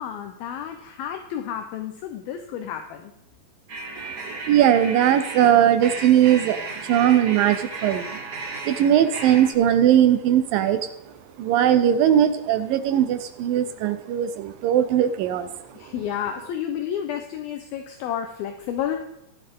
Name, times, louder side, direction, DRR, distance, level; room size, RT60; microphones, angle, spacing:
voice 1, 0.0-3.1 15.7-19.0, left 9 dB, 75° left, 6 dB, 2.5 m, -31 dB
sound 1, 3.7-9.5, right 3 dB, 40° right, 1.5 m, -35 dB
voice 2, 4.0-8.2 8.7-10.9 11.4-15.5, right 10 dB, 80° right, 10 dB, 2.1 m, -19 dB
16.5 x 10.5 x 3.7 m, 0.83 s
omnidirectional pair, 4.6 m